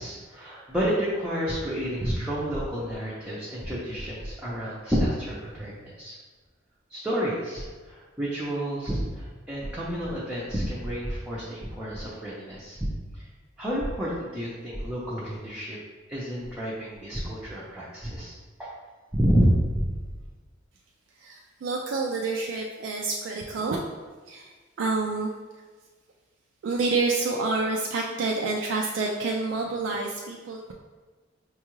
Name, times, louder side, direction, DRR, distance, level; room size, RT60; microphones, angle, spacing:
voice 1, 0.0-6.2 6.9-12.8 13.1-13.2 13.6-15.8 16.1-18.3 19.1-19.8, equal, 5° right, -8 dB, 0.5 m, -29 dB
voice 2, 21.1-23.9 24.3-25.6 26.6-30.7, right 3 dB, 70° right, 0 dB, 0.3 m, -28 dB
4.6 x 2.3 x 3.0 m, 1.3 s
head